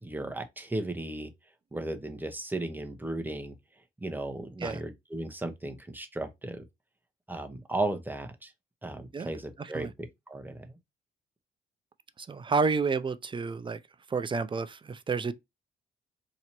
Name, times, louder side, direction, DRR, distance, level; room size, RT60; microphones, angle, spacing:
voice 1, 0.0-1.3 1.7-3.5 4.0-6.6 7.3-8.5 8.8-9.9 10.3-10.8, right 2 dB, 10° right, 0.8 m, -35 dB
voice 2, 9.6-9.9 12.2-13.8 14.1-15.3, right 4 dB, 25° right, 0.4 m, -30 dB
3.0 x 2.6 x 4.3 m
cardioid pair, 90°, 20 cm